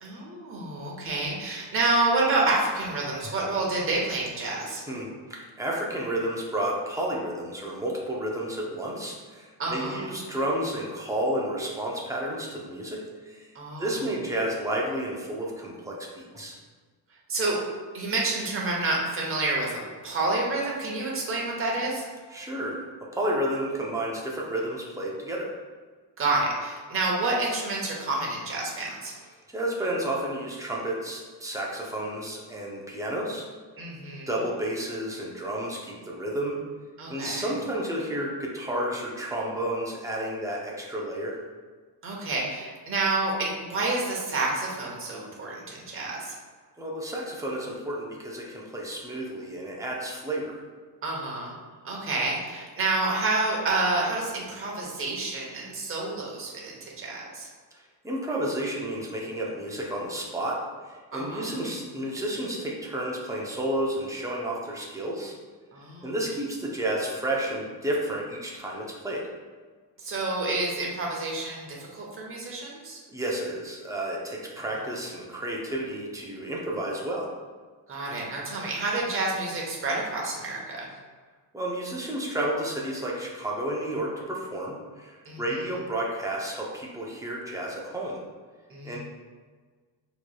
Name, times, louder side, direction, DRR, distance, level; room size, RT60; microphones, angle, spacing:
voice 1, 0.0-4.9 9.6-10.0 13.5-13.9 17.3-17.6 17.9-22.0 26.2-29.2 33.8-34.3 37.0-37.5 42.0-46.3 51.0-51.6 51.8-57.5 61.1-61.4 65.7-66.1 70.0-73.0 77.9-80.9 85.2-85.4 88.7-89.0, right 2 dB, 30° right, -3 dB, 0.8 m, -29 dB
voice 2, 4.9-13.5 13.8-16.6 22.3-22.8 23.1-25.5 29.5-33.5 34.3-36.6 37.1-41.4 46.8-50.6 57.7-60.6 60.8-65.3 66.0-69.2 73.1-77.3 81.5-88.2 88.8-89.0, right 1 dB, 10° right, -3 dB, 0.5 m, -31 dB
4.4 x 3.0 x 2.2 m, 1.5 s
cardioid pair, 135°, 43 cm